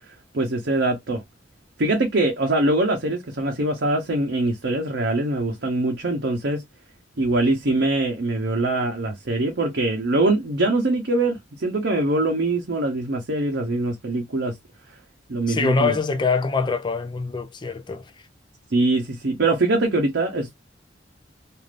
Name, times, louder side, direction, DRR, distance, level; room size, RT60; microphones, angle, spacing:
voice 1, 0.3-1.2 1.8-6.6 7.2-14.6 15.3-15.9 18.7-20.5, right 2 dB, 70° right, 0.8 m, -23 dB
voice 2, 15.5-18.1, left 4 dB, 25° left, 0.4 m, -24 dB
3.3 x 2.5 x 2.4 m
head